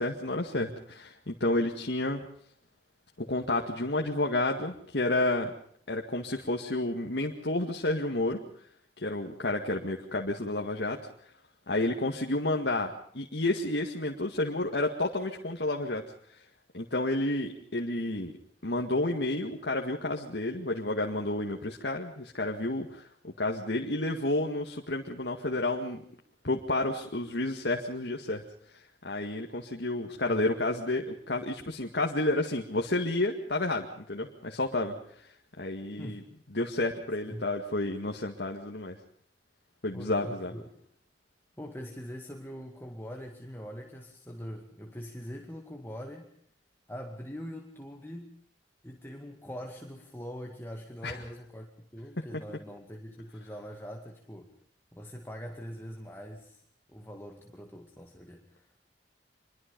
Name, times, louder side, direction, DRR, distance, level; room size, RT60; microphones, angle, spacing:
voice 1, 0.0-2.2 3.2-5.5 5.9-8.4 9.0-11.0 11.7-16.0 16.3-16.4 16.7-18.3 18.6-26.0 26.4-28.4 28.7-35.3 35.6-36.2 36.5-39.0 39.8-40.5 51.0-51.2, left 2 dB, 70° left, 1 dB, 2.0 m, -30 dB
voice 2, 39.9-40.7 41.6-46.3 46.9-48.4 48.8-54.5 54.9-56.6 56.9-58.8, equal, 15° left, 2 dB, 2.1 m, -43 dB
26.0 x 22.5 x 5.4 m, 0.64 s
head